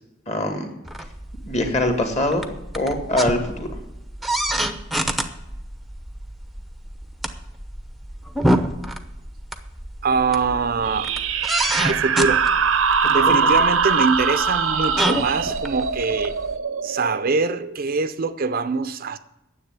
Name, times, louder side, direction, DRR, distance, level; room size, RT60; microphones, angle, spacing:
voice 1, 0.3-0.7 1.5-2.5 2.7-3.7 13.0-13.3, left 1 dB, 35° left, 2.0 m, -23 dB
sound 1, 0.8-16.6, right 1 dB, ahead, 0.7 m, -28 dB
voice 2, 10.0-11.1 11.8-12.4 13.1-16.3 16.8-19.2, right 4 dB, 45° right, 0.5 m, -23 dB
sound 2, 10.8-18.1, right 5 dB, 90° right, 0.8 m, -22 dB
10.0 x 7.5 x 9.5 m
head